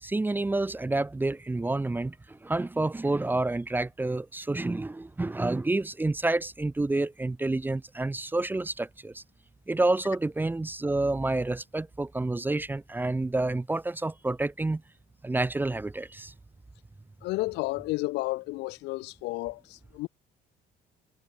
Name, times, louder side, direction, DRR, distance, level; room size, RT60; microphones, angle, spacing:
voice 1, 0.0-9.2 9.7-14.8 15.2-16.3, right 2 dB, 10° right, 0.6 m, -29 dB
voice 2, 17.2-20.1, left 21 dB, 90° left, 1.1 m, -32 dB
cardioid pair, 110°, 17 cm